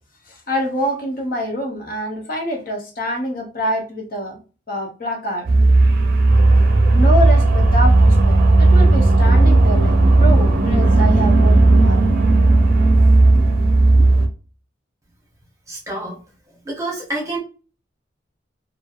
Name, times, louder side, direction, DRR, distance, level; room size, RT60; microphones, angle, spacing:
voice 1, 0.3-4.4 4.7-5.5 6.5-6.6 6.9-12.1 13.3-13.4 14.0-14.1, equal, 45° left, 2 dB, 0.6 m, -25 dB
sound 1, 5.5-14.3, right 2 dB, 50° right, 0.4 m, -13 dB
voice 2, 15.7-16.2 16.6-17.4, right 2 dB, 15° right, -2 dB, 0.9 m, -27 dB
3.1 x 2.3 x 2.3 m, 0.35 s
head